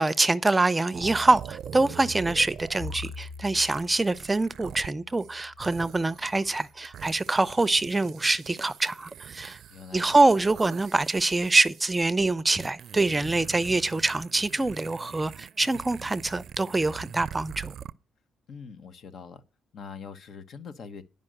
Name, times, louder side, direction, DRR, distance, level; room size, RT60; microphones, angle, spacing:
voice 1, 0.0-9.6 9.9-17.7, right 2 dB, 20° right, 0.6 m, -25 dB
sound 1, 0.9-4.9 5.2-12.0 12.6-17.9, right 9 dB, 65° right, 0.5 m, -43 dB
Bowed string instrument, 2.8-7.2, left 3 dB, 40° left, 4.3 m, -44 dB
voice 2, 9.7-10.2 18.5-19.4 19.7-21.0, left 6 dB, 60° left, 1.2 m, -43 dB
11.0 x 5.3 x 7.8 m
cardioid pair, 90°, 0 cm